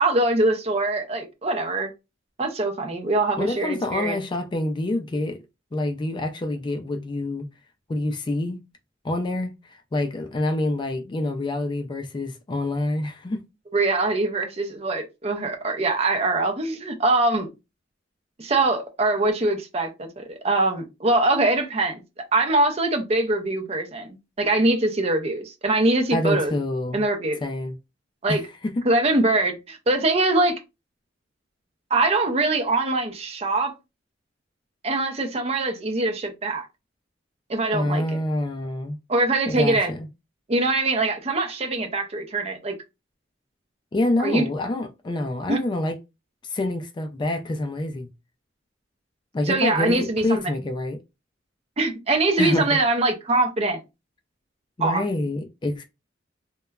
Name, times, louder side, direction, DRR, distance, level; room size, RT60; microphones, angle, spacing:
voice 1, 0.0-1.9 2.4-4.2 13.7-17.5 18.4-26.5 26.9-27.4 28.2-28.4 28.8-30.6 31.9-33.7 34.8-36.7 37.5-38.2 39.1-39.9 40.5-42.7 44.2-44.4 45.5-45.6 49.5-50.4 51.8-53.8 54.8-55.0, right 2 dB, 35° right, 0.5 m, -23 dB
voice 2, 3.4-5.4 5.7-7.5 7.9-8.6 9.0-13.4 26.1-27.0 27.4-27.8 28.3-28.7 37.7-39.0 39.5-40.1 43.9-46.0 46.4-48.1 49.3-51.0 52.4-52.7 54.8-55.8, left 1 dB, 25° left, 0.3 m, -27 dB
2.9 x 2.2 x 2.2 m
head